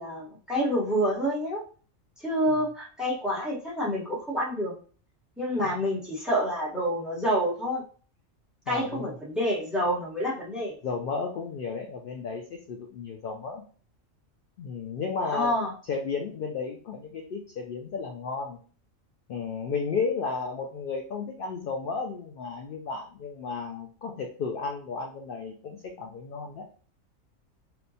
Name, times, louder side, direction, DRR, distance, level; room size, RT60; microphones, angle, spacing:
voice 1, 0.0-1.6 2.2-4.7 5.4-7.8 8.7-10.7 15.3-15.7, equal, ahead, -5 dB, 0.9 m, -28 dB
voice 2, 8.7-9.2 10.8-13.6 14.6-15.6 15.9-18.6 19.3-26.7, left 5 dB, 65° left, 2 dB, 0.5 m, -33 dB
4.3 x 2.2 x 2.7 m, 0.41 s
omnidirectional pair, 1.4 m